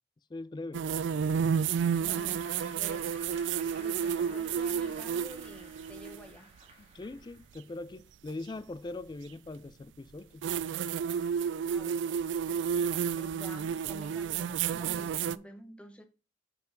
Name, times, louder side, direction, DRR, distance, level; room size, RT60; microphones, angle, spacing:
voice 1, 0.3-0.9 6.9-10.4, left 2 dB, 25° left, 0.3 m, -41 dB
sound 1, 0.7-6.2 8.3-8.4 10.4-15.4, right 7 dB, 90° right, 0.3 m, -31 dB
Applause / Crowd, 1.4-7.8, right 1 dB, 35° right, 1.9 m, -53 dB
voice 2, 1.9-3.2 3.7-6.5 11.7-16.1, equal, 5° left, 0.8 m, -50 dB
5.9 x 4.6 x 5.1 m
head